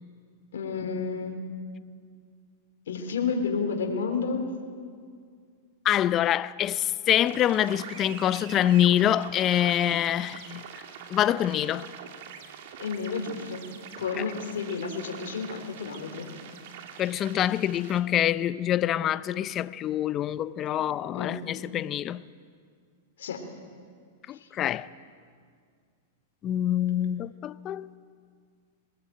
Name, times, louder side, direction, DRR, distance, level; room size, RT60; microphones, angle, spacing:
voice 1, 0.5-1.4 2.9-4.5 12.8-13.6 14.0-16.3 21.1-21.4 23.2-23.4 24.3-24.5, left 5 dB, 80° left, 3.4 m, -31 dB
voice 2, 5.8-10.6 11.1-11.9 17.0-22.2 24.3-24.9 26.4-27.9, left 11 dB, 30° left, 0.6 m, -25 dB
sound 1, 7.2-18.0, right 8 dB, 65° right, 2.6 m, -44 dB
22.5 x 20.0 x 9.1 m
hypercardioid pair, 130°, 0 cm